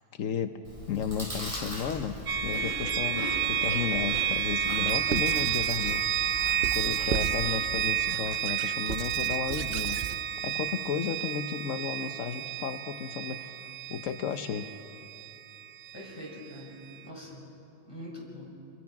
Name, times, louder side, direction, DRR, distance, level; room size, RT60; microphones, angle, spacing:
voice 1, 0.1-0.6 0.9-10.0 10.4-13.5 13.9-14.7, left 7 dB, 90° left, 8 dB, 1.2 m, -34 dB
Chewing mastication, 0.6-7.9, equal, 25° right, 5.9 m, -40 dB
sound 1, 2.3-16.1, right 10 dB, 85° right, 1.1 m, -30 dB
Squeak / Writing, 5.1-6.0 6.6-7.5 8.0-10.2, right 8 dB, 55° right, 0.8 m, -36 dB
voice 2, 15.9-17.4 17.9-18.5, equal, 20° left, -3 dB, 6.4 m, -43 dB
28.5 x 21.5 x 5.9 m, 2.8 s
omnidirectional pair, 1.3 m